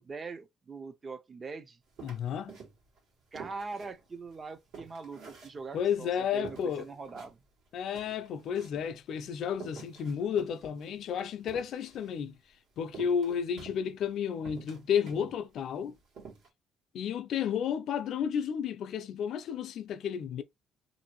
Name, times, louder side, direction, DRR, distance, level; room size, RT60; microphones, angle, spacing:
voice 1, 0.0-1.8 3.3-7.4, right 4 dB, 30° right, 0.5 m, -42 dB
voice 2, 2.0-2.6 5.7-6.9 7.7-12.4 12.8-16.0 16.9-20.4, left 8 dB, 60° left, 0.4 m, -32 dB
sound 1, 2.0-3.0 3.3-6.0 6.4-7.3 7.7-7.8 7.9-8.9 9.5-12.1 12.9-14.1 14.4-15.4 15.7-15.8 16.1-16.5, right 5 dB, 70° right, 1.4 m, -49 dB
2.7 x 2.5 x 2.9 m
cardioid pair, 110°, 0 cm